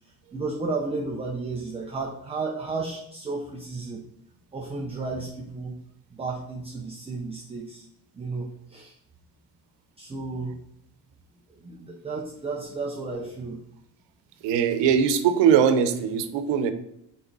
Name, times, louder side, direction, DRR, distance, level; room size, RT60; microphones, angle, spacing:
voice 1, 0.3-4.0 4.5-5.8 6.1-7.9 8.1-9.0 10.0-10.6 11.6-13.6, right 3 dB, 15° right, -1 dB, 0.6 m, -33 dB
voice 2, 14.4-16.7, right 7 dB, 90° right, 10 dB, 0.9 m, -21 dB
6.3 x 4.5 x 3.9 m, 0.78 s
cardioid pair, 160°, 41 cm